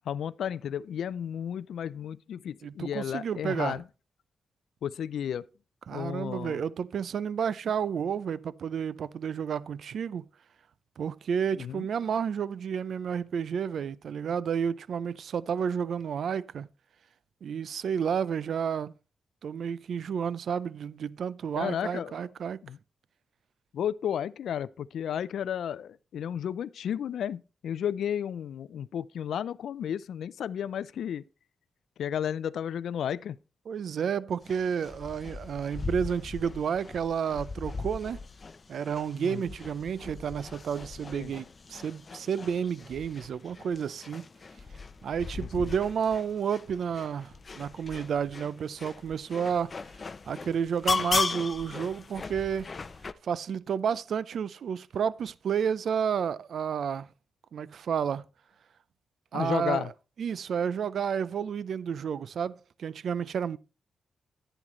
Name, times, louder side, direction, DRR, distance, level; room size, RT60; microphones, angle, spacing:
voice 1, 0.1-3.8 4.8-5.4 5.9-6.6 11.6-11.9 21.6-22.1 22.6-22.8 23.7-31.2 32.0-33.4 39.2-39.4 41.1-41.3 45.5-45.7 59.3-59.9, left 9 dB, 80° left, 0.4 m, -33 dB
voice 2, 2.6-3.8 5.9-10.2 11.0-16.7 17.4-18.9 19.4-22.6 33.7-38.2 38.7-44.2 45.0-52.7 53.2-57.1 57.5-58.2 59.3-59.9 60.2-63.6, right 7 dB, 70° right, 0.5 m, -31 dB
sound 1, 34.4-53.1, left 4 dB, 40° left, 0.6 m, -38 dB
11.0 x 9.1 x 3.1 m
cardioid pair, 75°, 0 cm